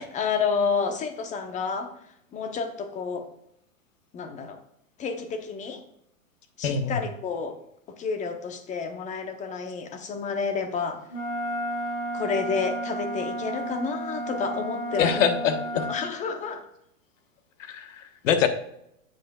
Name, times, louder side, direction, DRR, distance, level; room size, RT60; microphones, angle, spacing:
voice 1, 0.0-1.9 2.3-3.3 4.1-4.6 5.0-5.8 6.6-7.6 8.0-11.0 12.1-15.3 15.7-16.6, left 5 dB, 20° left, 7 dB, 0.8 m, -30 dB
voice 2, 6.6-7.0 15.0-15.8 17.6-18.5, left 7 dB, 65° left, 8 dB, 1.3 m, -24 dB
Wind instrument woodwind instrument, 11.1-16.0, right 1 dB, 35° left, 3.6 m, -32 dB
10.5 x 7.7 x 2.4 m, 0.75 s
hypercardioid pair, 135°, 41 cm